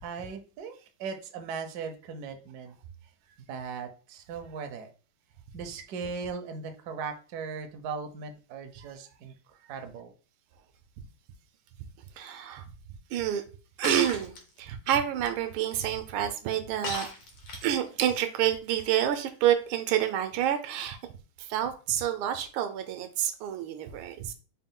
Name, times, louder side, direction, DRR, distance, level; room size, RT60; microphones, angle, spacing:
voice 1, 0.0-2.8 3.5-4.9 5.5-9.3 9.7-10.1, right 5 dB, 70° right, 5 dB, 1.0 m, -38 dB
voice 2, 12.2-12.6 13.1-13.4 13.8-17.1 17.6-21.0 21.4-24.3, right 10 dB, 85° right, 8 dB, 1.4 m, -28 dB
Shatter, 13.8-14.4 16.8-17.9, left 3 dB, 65° left, 1.6 m, -36 dB
4.3 x 2.2 x 3.6 m, 0.37 s
omnidirectional pair, 2.3 m